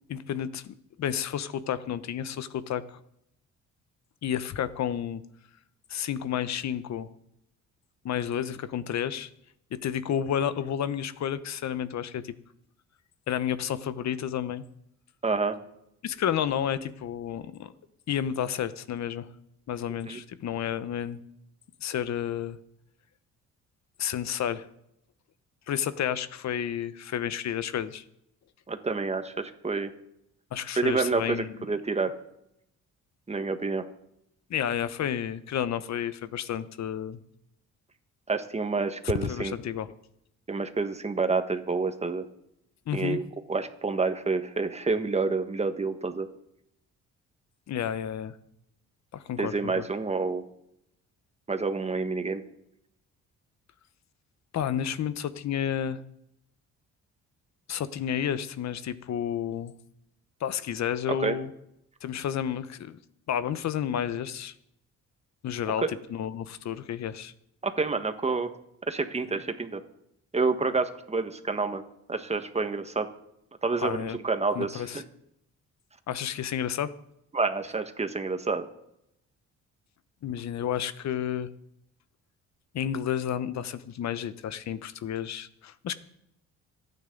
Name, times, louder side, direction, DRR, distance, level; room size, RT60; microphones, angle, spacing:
voice 1, 0.1-3.0 4.2-5.2 5.9-7.1 8.0-9.3 9.7-12.3 13.3-14.6 16.0-17.7 18.1-19.3 19.7-21.2 21.8-22.6 24.0-24.7 25.7-28.0 30.5-31.6 34.5-37.2 39.2-39.9 42.9-43.2 47.7-48.4 49.1-49.8 54.5-56.0 57.7-59.7 60.4-61.5 62.0-63.0 63.3-64.5 65.4-67.3 73.8-74.2 74.5-75.0 76.1-76.9 80.2-81.5 82.7-85.9, left 9 dB, 65° left, 14 dB, 1.1 m, -31 dB
voice 2, 15.2-15.5 20.0-20.2 28.7-29.9 30.8-32.1 33.3-33.9 38.3-39.5 40.5-42.2 42.9-43.2 43.5-46.3 49.4-50.4 51.5-52.4 61.2-61.3 65.8-65.9 67.6-68.5 68.9-69.8 70.3-71.8 72.1-73.1 73.6-75.0 77.3-78.7, right 4 dB, 20° right, 8 dB, 1.6 m, -28 dB
26.5 x 9.5 x 4.0 m, 0.78 s
cardioid pair, 90°, 30 cm